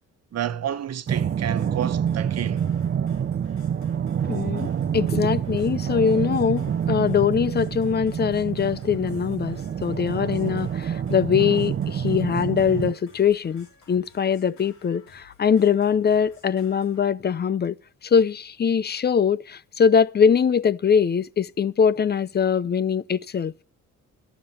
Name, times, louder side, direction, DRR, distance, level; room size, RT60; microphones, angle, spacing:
voice 1, 0.3-2.6, right 10 dB, 55° right, 1.1 m, -30 dB
sound 1, 1.1-17.1, left 4 dB, 70° left, 4.5 m, -56 dB
sound 2, 1.1-12.9, right 8 dB, 40° right, 0.6 m, -27 dB
voice 2, 4.3-17.8 18.0-23.5, left 7 dB, 35° left, 0.6 m, -22 dB
11.5 x 7.3 x 8.1 m
cardioid pair, 90°, 30 cm